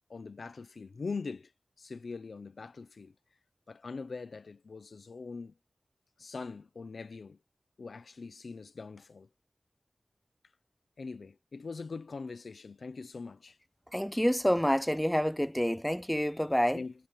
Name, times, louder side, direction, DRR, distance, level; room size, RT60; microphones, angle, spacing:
voice 1, 0.1-1.5 1.8-3.1 3.7-5.5 6.2-7.4 7.8-9.3 11.0-13.6 16.7-16.9, left 4 dB, 85° left, 0.9 m, -42 dB
voice 2, 13.9-16.8, equal, 5° left, 0.5 m, -28 dB
wide cardioid pair, 75°, 0 cm